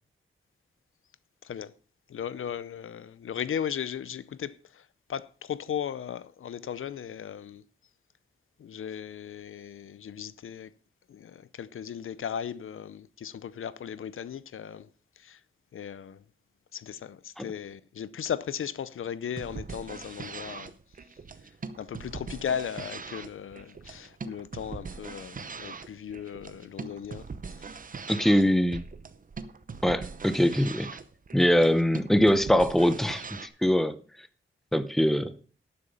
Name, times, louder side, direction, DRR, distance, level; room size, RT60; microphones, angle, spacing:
voice 1, 1.4-1.7 2.1-7.6 8.6-10.7 11.1-14.9 15.2-15.4 15.7-16.2 16.7-20.7 21.8-27.8, left 8 dB, 80° left, 0.6 m, -37 dB
sound 1, 19.3-33.5, right 4 dB, 40° right, 0.8 m, -41 dB
voice 2, 28.1-28.8 29.8-30.9 31.3-34.0 34.7-35.3, equal, ahead, 0.7 m, -23 dB
12.0 x 7.0 x 5.4 m
wide cardioid pair, 140°, 21 cm